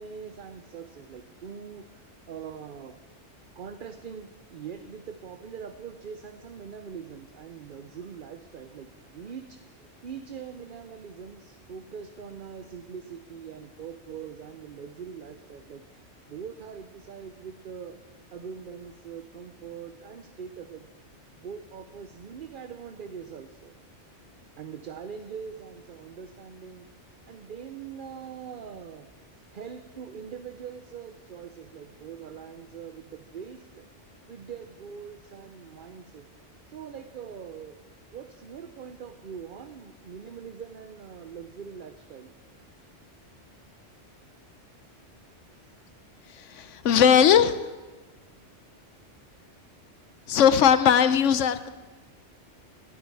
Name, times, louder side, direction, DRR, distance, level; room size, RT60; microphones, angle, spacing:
voice 1, 0.0-3.0 3.5-18.0 18.3-20.9 21.4-23.7 24.6-26.9 27.3-29.1 29.5-33.8 34.3-36.3 36.7-37.8 38.1-42.4 45.7-45.8, right 7 dB, 50° right, 8 dB, 0.8 m, -42 dB
voice 2, 46.4-47.6 50.3-51.7, left 8 dB, 85° left, 13 dB, 1.0 m, -19 dB
18.0 x 12.0 x 4.7 m, 1.2 s
omnidirectional pair, 1.2 m